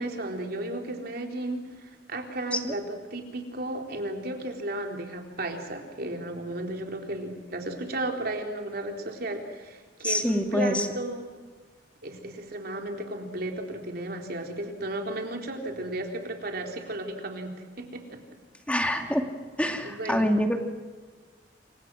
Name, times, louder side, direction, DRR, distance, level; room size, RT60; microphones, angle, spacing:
voice 1, 0.0-1.7 2.1-11.3 12.0-18.2 19.8-20.3, right 1 dB, 60° right, 3 dB, 3.8 m, -34 dB
voice 2, 10.0-10.9 18.7-19.3 19.6-20.6, equal, 5° left, 4 dB, 2.3 m, -26 dB
28.5 x 25.0 x 6.3 m, 1.4 s
head